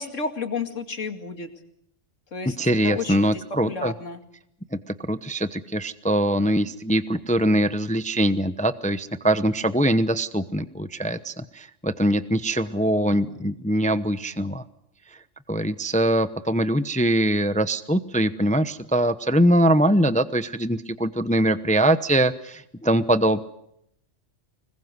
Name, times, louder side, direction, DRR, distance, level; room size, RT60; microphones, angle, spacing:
voice 1, 0.0-1.5 2.3-2.6 2.8-3.4 3.7-4.2, left 4 dB, 85° left, 7 dB, 2.7 m, -31 dB
voice 2, 2.6-3.9 5.1-14.6 15.5-23.4, right 1 dB, 5° left, 12 dB, 0.7 m, -22 dB
25.5 x 21.5 x 8.1 m, 0.77 s
omnidirectional pair, 1.3 m